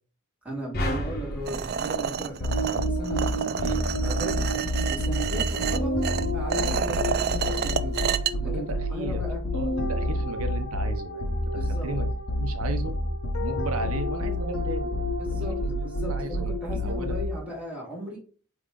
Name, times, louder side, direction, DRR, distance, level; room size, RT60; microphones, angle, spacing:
voice 1, 0.4-3.2 3.7-4.5 4.9-6.0 6.3-8.0 8.4-9.4 11.5-11.9 15.2-18.2, right 1 dB, 5° right, -4 dB, 2.5 m, -37 dB
sound 1, 0.7-3.1, equal, 45° left, 1.3 m, -33 dB
sound 2, 1.5-8.3, right 7 dB, 50° right, 0.3 m, -29 dB
sound 3, 2.4-17.6, left 1 dB, 80° left, 1.1 m, -28 dB
voice 2, 8.3-9.3 9.5-12.1 12.4-13.0 13.4-15.7 16.1-17.2, right 2 dB, 90° right, 8 dB, 0.8 m, -35 dB
8.4 x 3.1 x 3.7 m, 0.41 s
head